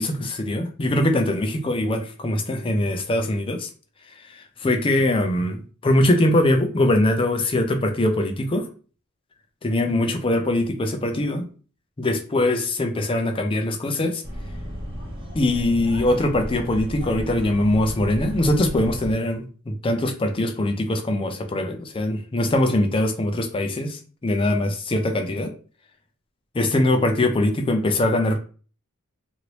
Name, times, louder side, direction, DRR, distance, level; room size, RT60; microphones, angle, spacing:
voice 1, 0.0-3.7 4.3-8.7 9.6-11.5 12.0-14.2 15.3-25.5 26.5-28.4, left 1 dB, 25° left, 6 dB, 0.4 m, -22 dB
sound 1, 14.2-19.1, equal, 25° right, 0.9 m, -33 dB
2.9 x 2.6 x 3.0 m, 0.39 s
head